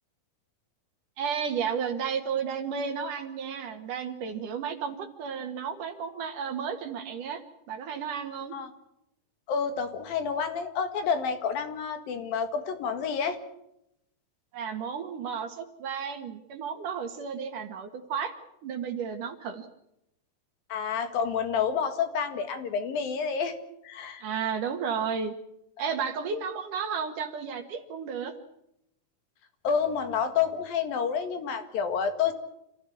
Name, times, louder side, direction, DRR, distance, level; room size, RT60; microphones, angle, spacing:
voice 1, 1.2-7.4 7.7-8.5 14.5-18.3 18.6-19.7 24.2-25.3 25.8-28.3, right 6 dB, 60° right, 7 dB, 3.2 m, -33 dB
voice 2, 9.5-13.4 20.7-23.6 23.8-24.3 29.6-32.3, left 6 dB, 70° left, 9 dB, 3.5 m, -29 dB
27.5 x 15.5 x 8.7 m, 0.81 s
omnidirectional pair, 4.4 m